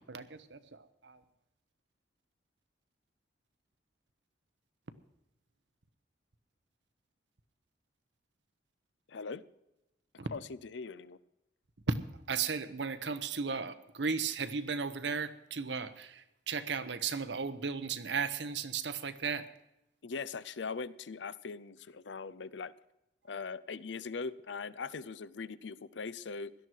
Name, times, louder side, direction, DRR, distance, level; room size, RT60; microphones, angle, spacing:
voice 1, 0.1-1.2 10.2-10.3 11.9-12.0 12.3-19.5, right 5 dB, 75° right, 11 dB, 1.0 m, -35 dB
voice 2, 9.1-9.4 10.3-11.2 20.0-22.7 23.2-26.5, left 4 dB, 80° left, 17 dB, 0.6 m, -41 dB
17.0 x 12.5 x 4.6 m, 0.91 s
head